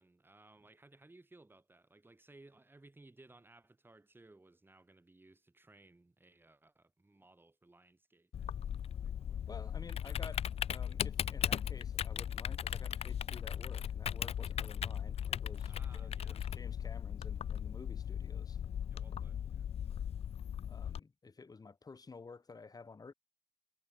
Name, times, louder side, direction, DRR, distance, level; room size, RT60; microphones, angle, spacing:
voice 1, 0.0-9.9 15.7-16.4 18.9-19.7, right 2 dB, 20° right, 4.0 m, -62 dB
Typing, 8.3-21.0, left 9 dB, 70° left, 0.6 m, -38 dB
voice 2, 9.5-18.6 20.7-23.1, left 4 dB, 35° left, 1.7 m, -52 dB
cardioid pair, 80°, 11 cm